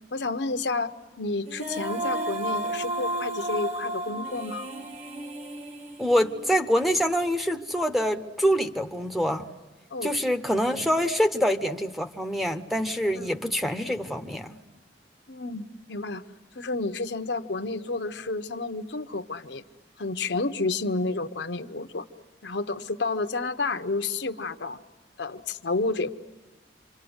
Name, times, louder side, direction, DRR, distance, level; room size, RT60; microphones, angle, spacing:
voice 1, 0.1-4.7 9.9-10.1 13.1-13.3 15.3-16.2 16.5-19.6 20.0-22.0 22.4-24.8 25.2-26.2, left 3 dB, 75° left, 1.0 m, -30 dB
Female singing, 1.5-6.7, right 1 dB, 35° right, 1.8 m, -33 dB
voice 2, 6.0-9.5 10.0-14.6, equal, ahead, 0.9 m, -25 dB
28.5 x 26.0 x 8.1 m
head